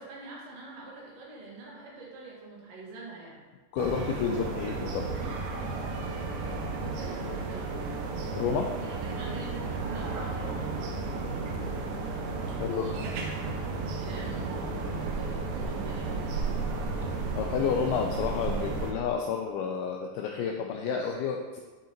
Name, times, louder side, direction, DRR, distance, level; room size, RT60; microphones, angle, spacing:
voice 1, 0.0-3.4 6.9-7.8 8.8-10.8 12.4-13.0 13.9-16.6, right 3 dB, 50° right, -4 dB, 2.2 m, -44 dB
voice 2, 3.7-5.1 8.4-8.7 11.5-11.7 12.6-12.9 17.4-21.6, left 7 dB, 85° left, 2 dB, 2.2 m, -30 dB
sound 1, 3.8-18.9, right 3 dB, 80° right, 2.0 m, -33 dB
11.5 x 5.6 x 2.9 m, 1.3 s
omnidirectional pair, 4.9 m